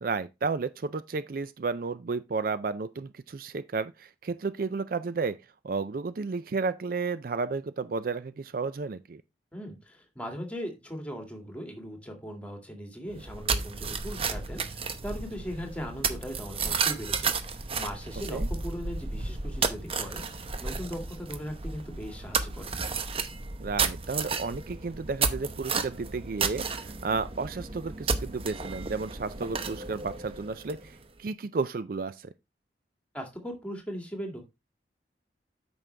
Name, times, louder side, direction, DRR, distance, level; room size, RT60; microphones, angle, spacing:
voice 1, 0.0-5.4 5.6-9.2 18.3-18.5 23.6-32.3, right 4 dB, 50° right, 0.4 m, -32 dB
voice 2, 9.5-22.7 33.1-34.4, equal, 5° left, 2.2 m, -39 dB
sound 1, 13.1-31.0, right 5 dB, 35° right, 0.8 m, -32 dB
8.9 x 6.1 x 3.3 m
head